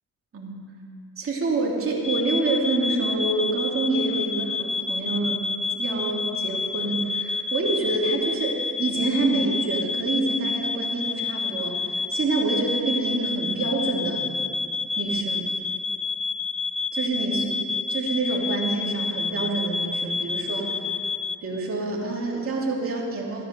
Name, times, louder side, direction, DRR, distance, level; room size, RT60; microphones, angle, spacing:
voice 1, 1.2-5.4 5.7-14.3 15.0-15.5 16.9-17.5 17.9-20.8 21.4-23.5, right 3 dB, 40° right, -3 dB, 3.0 m, -27 dB
sound 1, 2.0-21.4, left 4 dB, 20° left, 0.4 m, -29 dB
14.0 x 9.8 x 6.9 m, 2.4 s
cardioid pair, 105°, 35 cm